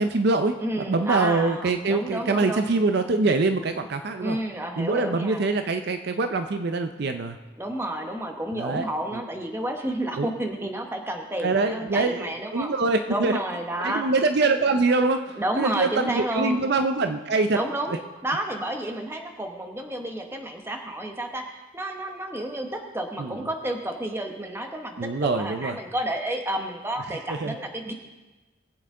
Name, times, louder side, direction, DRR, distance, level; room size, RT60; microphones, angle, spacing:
voice 1, 0.0-4.4 4.8-7.4 8.5-9.2 10.2-10.3 11.4-13.4 13.8-17.6 23.2-23.4 25.0-25.8 27.3-27.6, right 3 dB, 50° right, 7 dB, 0.5 m, -24 dB
voice 2, 0.6-2.7 4.2-5.4 7.6-12.7 13.1-14.0 15.4-16.6 17.5-18.0 18.2-27.9, right 1 dB, 10° right, 4 dB, 1.0 m, -30 dB
20.0 x 8.0 x 3.7 m, 1.2 s
head